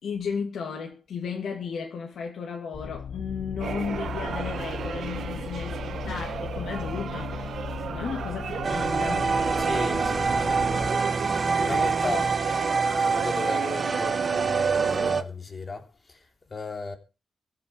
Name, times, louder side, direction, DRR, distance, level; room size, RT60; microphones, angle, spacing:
voice 1, 0.0-9.3, left 6 dB, 90° left, 2.6 m, -34 dB
sound 1, 2.7-10.9, left 7 dB, 55° left, 0.9 m, -37 dB
sound 2, 3.6-15.1, right 7 dB, 85° right, 1.4 m, -33 dB
sound 3, 8.6-15.2, right 4 dB, 30° right, 1.1 m, -26 dB
voice 2, 9.6-10.7 11.6-12.4 13.0-17.0, left 3 dB, 30° left, 3.0 m, -36 dB
23.0 x 7.8 x 4.7 m
wide cardioid pair, 150°, 0 cm